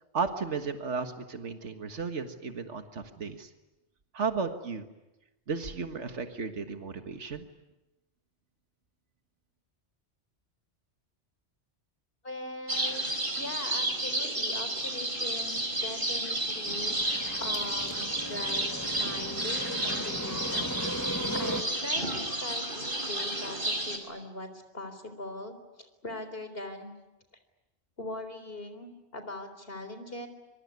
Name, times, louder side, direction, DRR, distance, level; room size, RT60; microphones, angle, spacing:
voice 1, 0.1-3.5 4.1-4.9 5.5-7.5, right 5 dB, 90° right, 7 dB, 1.9 m, -34 dB
voice 2, 12.2-26.9 28.0-30.3, left 2 dB, 55° left, 9 dB, 4.2 m, -41 dB
sound 1, 12.7-24.0, right 1 dB, 50° right, 4.8 m, -31 dB
sound 2, 16.6-21.6, equal, 15° left, 1.7 m, -38 dB
25.5 x 24.5 x 9.6 m, 1.0 s
omnidirectional pair, 1.2 m